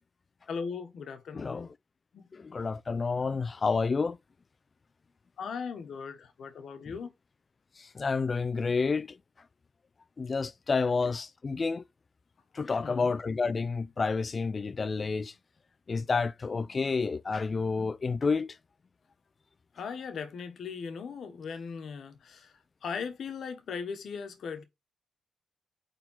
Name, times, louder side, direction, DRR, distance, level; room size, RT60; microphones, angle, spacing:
voice 1, 0.5-1.7 2.1-2.2 5.4-7.1 12.8-13.1 19.7-22.5 22.8-24.6, left 5 dB, 70° left, 1.3 m, -38 dB
voice 2, 1.3-1.7 2.3-4.2 7.8-9.2 10.2-11.8 12.5-15.3 15.9-18.6, left 4 dB, 40° left, 0.5 m, -29 dB
4.6 x 3.8 x 5.5 m
cardioid pair, 65°, 0 cm